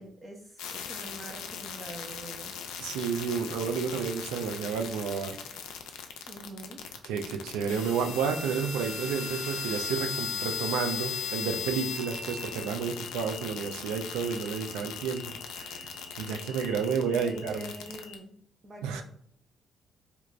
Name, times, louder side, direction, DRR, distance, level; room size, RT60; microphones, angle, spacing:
voice 1, 0.0-2.5 6.3-6.8 17.0-18.3 18.6-19.0, right 1 dB, 35° right, -1 dB, 0.6 m, -44 dB
sound 1, 0.6-18.2, left 7 dB, 85° left, 0.3 m, -38 dB
voice 2, 2.8-5.4 7.0-15.9 16.2-17.7 18.8-19.0, right 6 dB, 85° right, 6 dB, 0.3 m, -31 dB
3.3 x 2.9 x 2.4 m, 0.66 s
supercardioid pair, 55°, 0 cm